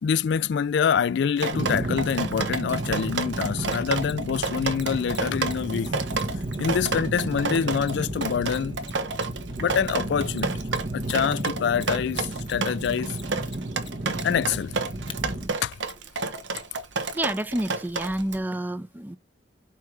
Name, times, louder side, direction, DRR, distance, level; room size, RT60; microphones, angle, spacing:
voice 1, 0.0-5.9 6.6-8.8 9.6-10.5 10.9-13.2 14.2-14.7 15.6-15.8, left 7 dB, 65° left, 0.3 m, -26 dB
Drip, 1.4-18.4, right 4 dB, 80° right, 1.1 m, -31 dB
sound 1, 1.5-15.5, right 1 dB, 45° right, 1.0 m, -33 dB
Mechanisms, 2.5-2.6 3.7-9.5 10.3-11.1 11.4-15.2 15.9-16.0, left 7 dB, 30° left, 0.8 m, -44 dB
voice 2, 17.1-19.2, right 1 dB, 10° right, 0.5 m, -29 dB
5.5 x 4.4 x 4.7 m
head